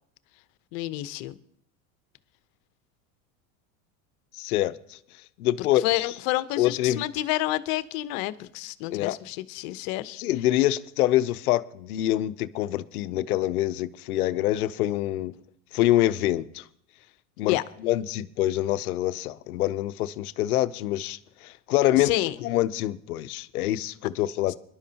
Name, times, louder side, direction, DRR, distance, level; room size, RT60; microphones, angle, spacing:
voice 1, 0.7-1.3 5.6-10.2 17.4-17.6 21.9-22.3 24.5-24.6, left 17 dB, 65° left, 1.0 m, -29 dB
voice 2, 4.3-5.0 5.4-6.0 6.6-7.0 8.9-9.2 10.2-15.3 15.7-16.6 17.4-17.5 17.8-22.1 22.4-24.5, left 14 dB, 85° left, 0.8 m, -25 dB
22.5 x 11.5 x 2.9 m
supercardioid pair, 105°, 43 cm